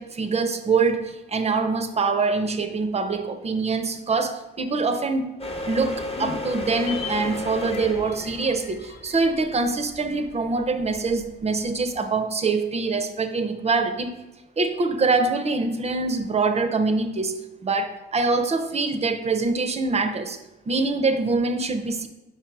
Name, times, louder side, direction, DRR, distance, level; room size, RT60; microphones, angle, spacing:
voice 1, 0.0-5.3 5.7-14.1 14.6-20.4 20.7-22.1, right 3 dB, 30° right, 8 dB, 0.6 m, -24 dB
sound 1, 5.4-12.0, left 1 dB, 30° left, 1.0 m, -34 dB
sound 2, 6.1-10.6 10.9-11.0, left 6 dB, 60° left, 0.6 m, -39 dB
4.6 x 4.6 x 4.6 m, 1.0 s
cardioid pair, 90°, 20 cm